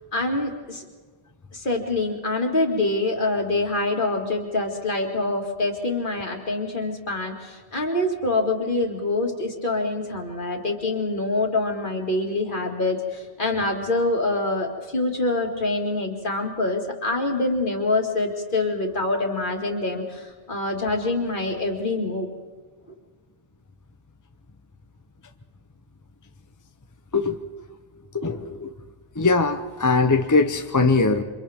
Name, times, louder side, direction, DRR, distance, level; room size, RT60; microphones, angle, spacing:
voice 1, 0.1-0.8 1.5-22.3, left 2 dB, 40° left, 1 dB, 2.5 m, -25 dB
voice 2, 28.1-28.7 29.1-31.2, left 3 dB, 20° left, 7 dB, 0.5 m, -21 dB
29.0 x 25.5 x 3.6 m, 1.5 s
omnidirectional pair, 1.4 m